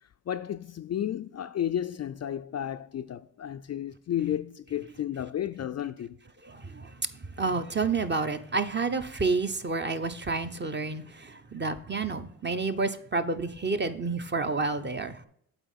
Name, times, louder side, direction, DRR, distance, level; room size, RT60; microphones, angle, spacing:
voice 1, 0.3-6.2, left 10 dB, 40° left, 0.4 m, -32 dB
voice 2, 6.4-7.0 7.4-15.2, right 4 dB, 25° right, 0.8 m, -30 dB
8.0 x 4.2 x 5.6 m
supercardioid pair, 50°, 40 cm